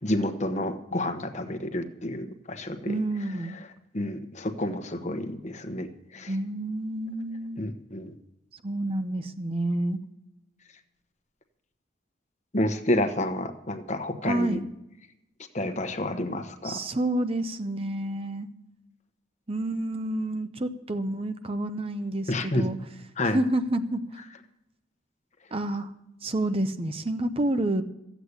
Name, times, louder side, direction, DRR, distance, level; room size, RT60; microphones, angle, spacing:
voice 1, 0.0-3.0 3.5-3.7 3.9-5.9 6.1-6.4 7.6-8.1 12.5-14.6 15.5-16.8 22.3-22.7 23.2-23.4, left 1 dB, 35° left, 8 dB, 1.1 m, -29 dB
voice 2, 2.9-3.6 6.3-7.6 8.6-10.0 14.2-14.6 16.6-18.5 19.5-22.8 23.3-24.0 25.5-25.9 26.2-27.8, right 1 dB, 30° right, 9 dB, 0.7 m, -29 dB
14.5 x 8.3 x 8.1 m, 0.89 s
head